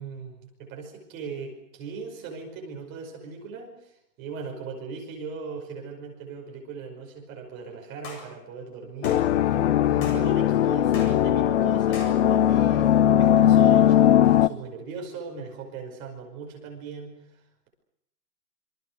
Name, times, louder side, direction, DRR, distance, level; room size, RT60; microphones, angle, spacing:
voice 1, 0.0-3.9 4.2-9.3 9.8-17.2, right 5 dB, 25° right, 1 dB, 5.4 m, -38 dB
sound 1, 8.0-8.3 9.0-9.2 10.0-10.2 10.9-11.2 11.9-12.1, left 3 dB, 25° left, 7.7 m, -40 dB
sound 2, 9.0-14.5, left 11 dB, 45° left, 1.0 m, -19 dB
27.0 x 25.5 x 6.7 m, 0.77 s
hypercardioid pair, 170°, 49 cm